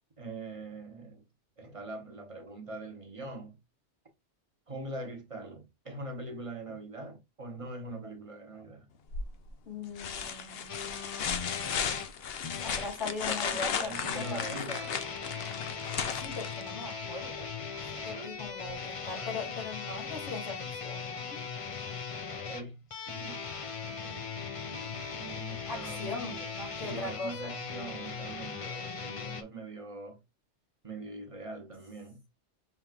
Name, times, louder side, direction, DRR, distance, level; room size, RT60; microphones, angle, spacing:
voice 1, 0.2-1.2 1.6-3.6 4.7-8.9 13.2-14.9 17.9-18.4 19.0-19.4 22.3-23.5 23.8-26.5 26.8-30.2 30.8-32.2, right 2 dB, 30° right, 0.9 m, -43 dB
sound 1, 9.1-9.5 10.0-16.9 18.7-18.8, left 7 dB, 60° left, 0.8 m, -35 dB
voice 2, 9.7-10.7 12.6-15.0 16.2-17.5 17.9-21.4 25.7-27.6, left 4 dB, 85° left, 2.8 m, -40 dB
sound 2, 10.7-12.9 14.0-29.4, left 5 dB, 40° left, 0.5 m, -39 dB
5.6 x 3.5 x 2.4 m
omnidirectional pair, 1.2 m